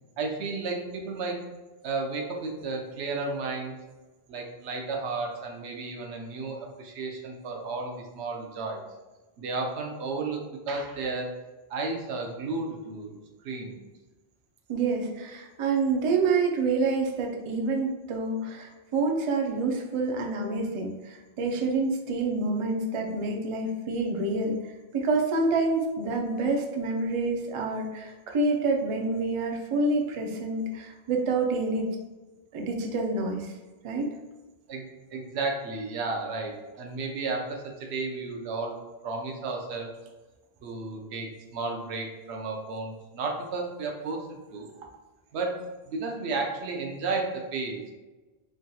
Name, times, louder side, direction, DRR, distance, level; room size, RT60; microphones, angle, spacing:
voice 1, 0.2-1.4 1.8-3.7 4.3-8.8 9.4-11.4 11.7-13.2 13.4-13.8 34.7-38.8 39.0-39.9 40.6-44.7 45.3-47.9, right 3 dB, 90° right, 2 dB, 0.9 m, -33 dB
voice 2, 14.7-31.9 32.5-33.5 33.8-34.1, right 3 dB, 55° right, 2 dB, 0.3 m, -27 dB
3.5 x 2.7 x 2.2 m, 1.2 s
omnidirectional pair, 1.1 m